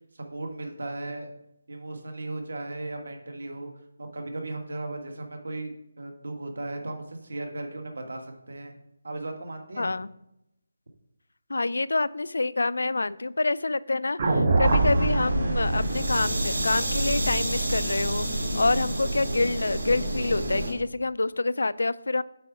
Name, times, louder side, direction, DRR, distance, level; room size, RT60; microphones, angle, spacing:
voice 1, 0.1-1.3 1.7-3.7 4.0-8.7 9.0-9.9, right 2 dB, 60° right, 4 dB, 1.5 m, -36 dB
voice 2, 9.8-10.1 11.5-18.3 18.6-22.2, left 2 dB, 80° left, 17 dB, 0.4 m, -27 dB
sound 1, 14.2-18.5, right 3 dB, 30° right, 0.8 m, -26 dB
sound 2, 14.6-20.7, right 1 dB, 80° right, 2.9 m, -29 dB
8.3 x 4.7 x 4.9 m, 0.82 s
figure-of-eight pair, 180°, 0 cm